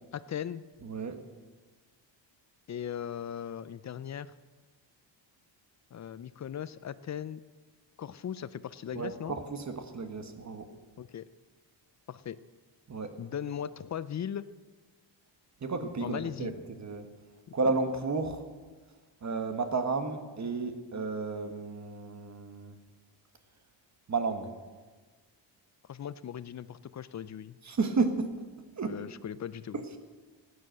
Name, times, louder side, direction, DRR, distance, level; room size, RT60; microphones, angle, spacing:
voice 1, 0.1-0.6 2.7-4.3 5.9-7.4 8.0-9.4 11.0-11.3 12.1-12.4 13.2-14.5 16.0-16.5 25.9-27.6 28.8-29.8, left 9 dB, 40° left, 16 dB, 0.5 m, -38 dB
voice 2, 0.8-1.2 8.9-10.7 12.9-13.1 15.6-16.5 16.8-17.1 17.5-18.4 19.2-22.7 24.1-24.5 27.6-28.3 28.8-29.0 29.7-29.8, right 4 dB, 40° right, 8 dB, 1.5 m, -32 dB
15.5 x 9.8 x 7.8 m, 1.4 s
cardioid pair, 125°, 45 cm